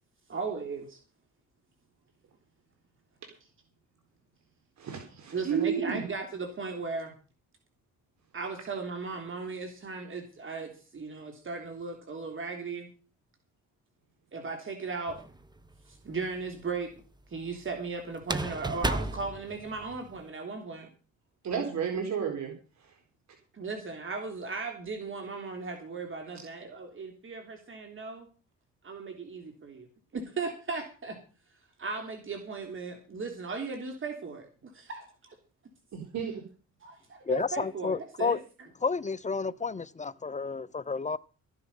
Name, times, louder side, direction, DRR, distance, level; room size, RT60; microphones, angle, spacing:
voice 1, 0.3-1.0 5.3-7.1 8.3-12.9 14.3-15.2 15.9-16.9 17.3-20.9 23.5-28.3 28.8-29.9 30.1-31.2 31.8-34.5 34.7-35.4 36.8-38.4, right 4 dB, 45° right, 3.4 m, -37 dB
voice 2, 4.8-6.0 21.4-22.5 22.8-22.9 35.9-36.4, right 7 dB, 65° right, 4.2 m, -32 dB
sound 1, 15.1-15.7 18.2-20.2, right 2 dB, 15° right, 1.2 m, -33 dB
voice 3, 37.3-38.4 38.8-41.2, left 4 dB, 25° left, 0.7 m, -31 dB
14.5 x 10.5 x 5.5 m
cardioid pair, 90°, 30 cm